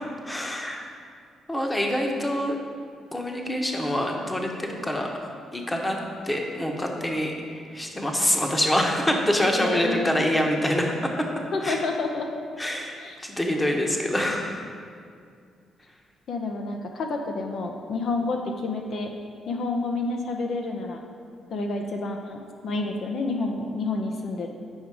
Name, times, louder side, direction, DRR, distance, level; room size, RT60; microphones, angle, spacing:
voice 1, 0.2-0.9 1.5-2.6 3.1-5.1 5.5-11.1 11.6-11.8 12.6-14.6, left 1 dB, 10° left, 1 dB, 1.0 m, -26 dB
voice 2, 9.6-10.2 11.5-12.3 13.0-13.2 16.3-19.1 19.5-21.0 21.5-24.5, left 3 dB, 65° left, 2 dB, 0.7 m, -29 dB
7.3 x 5.0 x 4.7 m, 2.2 s
cardioid pair, 90°, 0 cm